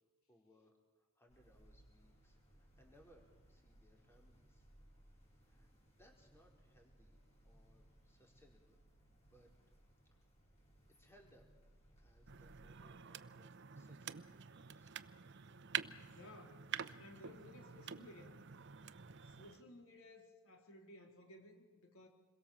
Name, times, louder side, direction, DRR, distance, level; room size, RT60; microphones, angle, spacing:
voice 1, 0.3-4.7 5.4-7.2 7.4-8.8 9.1-9.5 10.1-10.3 11.0-11.5 12.0-15.0, equal, 10° left, 0 dB, 4.5 m, -69 dB
sound 1, 1.3-12.9, right 1 dB, 30° left, 6.4 m, -66 dB
sound 2, 12.3-19.6, right 8 dB, 55° right, 0.8 m, -48 dB
voice 2, 16.1-16.6 17.0-18.4 19.2-22.1, left 1 dB, 80° left, 3 dB, 3.8 m, -58 dB
28.0 x 22.5 x 7.3 m, 1.2 s
head